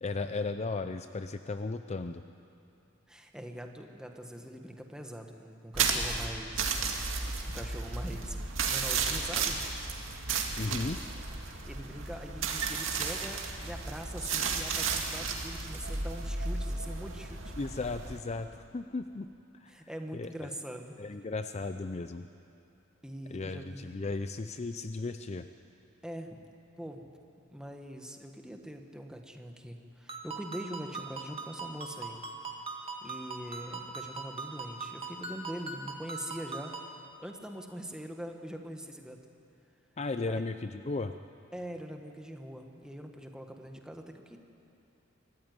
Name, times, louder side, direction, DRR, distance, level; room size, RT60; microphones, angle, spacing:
voice 1, 0.0-2.2 10.6-11.0 17.6-19.3 19.5-19.7 20.1-20.5 21.0-22.3 23.3-25.5 40.0-41.1, left 3 dB, 35° left, 9 dB, 0.5 m, -35 dB
voice 2, 3.1-7.1 7.4-9.6 11.6-17.5 19.7-21.0 23.0-24.0 26.0-26.4 26.8-27.1 27.5-32.2 33.0-36.8 37.2-39.2 40.3-40.4 41.5-44.4, equal, 5° right, 3 dB, 1.5 m, -43 dB
sound 1, 5.7-18.2, right 5 dB, 75° right, 2.2 m, -33 dB
Ringtone, 30.1-36.9, right 3 dB, 30° right, 1.9 m, -41 dB
25.0 x 14.0 x 9.6 m, 2.7 s
head